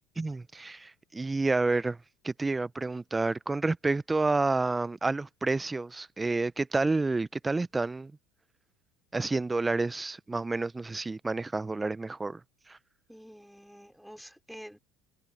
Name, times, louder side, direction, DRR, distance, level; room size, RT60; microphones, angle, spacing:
voice 1, 0.2-2.0 2.2-8.1 9.1-12.4 12.7-12.8, right 3 dB, 15° right, 0.9 m, -29 dB
voice 2, 13.1-14.8, equal, ahead, 5.5 m, -48 dB
hypercardioid pair, 75°, 0 cm